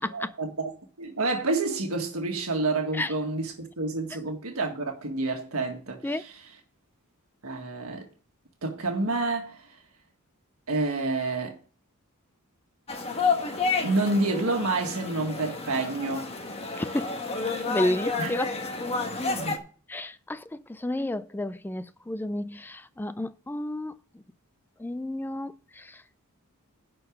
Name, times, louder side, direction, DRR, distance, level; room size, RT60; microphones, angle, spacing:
voice 1, 0.1-6.5 7.4-8.1 8.6-9.7 10.7-11.6 13.8-16.3 18.2-18.3 19.3-19.6, right 2 dB, 75° right, 1.7 m, -29 dB
sound 1, 12.9-19.6, left 4 dB, 30° left, 1.3 m, -30 dB
voice 2, 16.8-17.2 17.7-18.6 19.9-24.0 24.8-26.0, left 1 dB, 10° left, 0.3 m, -31 dB
11.0 x 4.6 x 6.4 m
head